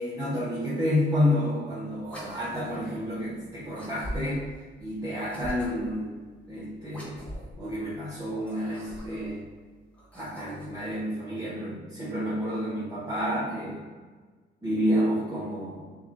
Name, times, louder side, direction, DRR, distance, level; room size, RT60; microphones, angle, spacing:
voice 1, 0.0-4.4 4.8-6.1 6.5-7.2 7.6-9.4 10.1-13.8 14.6-15.9, equal, 15° right, -8 dB, 1.0 m, -29 dB
sound 1, 2.0-2.9 3.7-4.5 5.2-6.0 6.9-7.6 8.3-9.3 9.9-10.8, equal, 5° left, 1.4 m, -41 dB
6.8 x 2.5 x 2.5 m, 1.4 s
cardioid pair, 90°, 20 cm